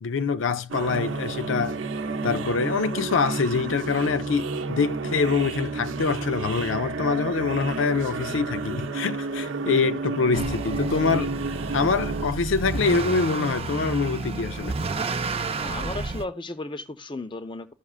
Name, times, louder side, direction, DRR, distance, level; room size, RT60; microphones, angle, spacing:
voice 1, 0.0-1.8 2.2-11.3 11.7-14.8, left 4 dB, 80° left, 0.5 m, -25 dB
sound 1, 0.7-12.3, right 3 dB, 85° right, 0.7 m, -31 dB
Motor vehicle (road) / Accelerating revving vroom, 10.3-16.2, right 3 dB, 30° right, 0.5 m, -31 dB
voice 2, 15.6-17.7, left 2 dB, 25° left, 0.7 m, -35 dB
15.5 x 6.0 x 2.4 m
head